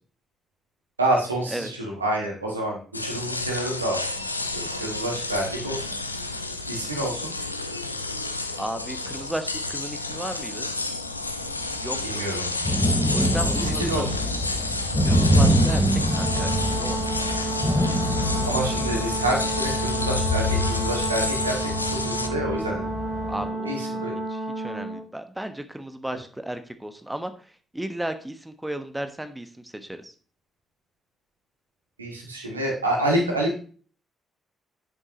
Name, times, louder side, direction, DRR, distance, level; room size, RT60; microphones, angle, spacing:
voice 1, 1.0-4.0 4.5-6.0 6.7-7.3 12.0-12.5 13.4-14.1 18.5-22.9 23.7-24.2 32.0-33.6, right 1 dB, 85° right, -1 dB, 2.1 m, -28 dB
sound 1, 2.9-22.3, left 2 dB, 85° left, 0.5 m, -30 dB
sound 2, 4.6-4.7 5.3-5.4 6.3-6.4 7.1-7.2 9.1-9.2 9.7-9.8 10.8-10.9 11.2-23.5, equal, 10° left, 4.5 m, -26 dB
voice 2, 8.6-10.7 11.8-12.2 13.1-14.1 15.0-17.0 23.3-27.3 27.7-30.1, right 1 dB, 10° right, 9 dB, 1.3 m, -34 dB
Brass instrument, 16.1-25.0, right 2 dB, 50° right, 3.9 m, -31 dB
10.5 x 9.1 x 3.0 m, 0.40 s
figure-of-eight pair, 40°, 0 cm